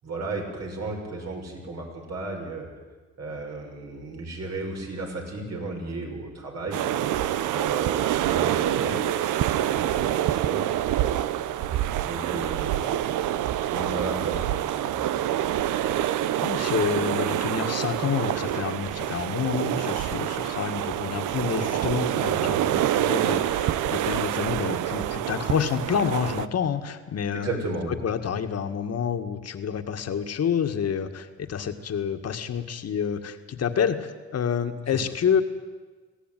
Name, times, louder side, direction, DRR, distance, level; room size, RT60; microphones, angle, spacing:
voice 1, 0.0-2.7 3.2-7.0 7.5-9.0 9.3-10.6 12.0-13.0 13.7-15.0 22.2-22.5 27.3-27.9 34.9-35.0, right 3 dB, 60° right, 0 dB, 6.9 m, -34 dB
sound 1, 6.7-26.5, right 12 dB, 85° right, 0.9 m, -26 dB
voice 2, 16.4-27.7 28.0-35.4, left 7 dB, 55° left, 7 dB, 2.0 m, -28 dB
23.0 x 17.0 x 9.4 m, 1.3 s
cardioid pair, 90°, 30 cm